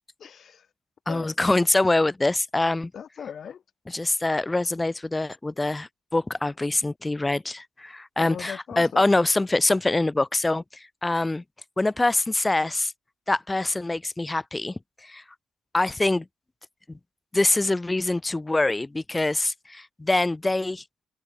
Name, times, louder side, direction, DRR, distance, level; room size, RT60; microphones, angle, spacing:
voice 1, 0.2-0.7 1.1-1.3 2.9-3.6 8.2-9.1, left 8 dB, 55° left, 3.0 m, -39 dB
voice 2, 1.1-2.9 3.9-11.4 11.8-12.9 13.3-15.2 15.7-16.3 16.9-17.0 17.3-20.8, left 2 dB, 15° left, 0.4 m, -24 dB
cardioid pair, 95°, 0 cm